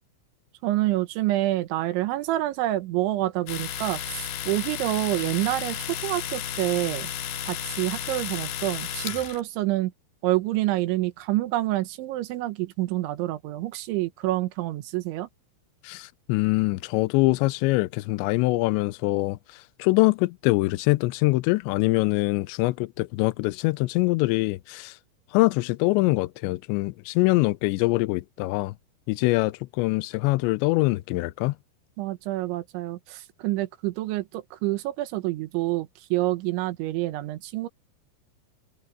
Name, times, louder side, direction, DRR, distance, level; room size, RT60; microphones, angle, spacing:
voice 1, 0.6-7.1 7.4-9.9 10.2-15.3 32.0-37.7, right 16 dB, 90° right, 3.6 m, -27 dB
Domestic sounds home sounds, 3.5-9.4, left 9 dB, 65° left, 3.0 m, -33 dB
voice 2, 15.8-25.0 25.3-28.8 29.1-31.6, left 21 dB, 85° left, 2.9 m, -24 dB
omnidirectional pair, 5.2 m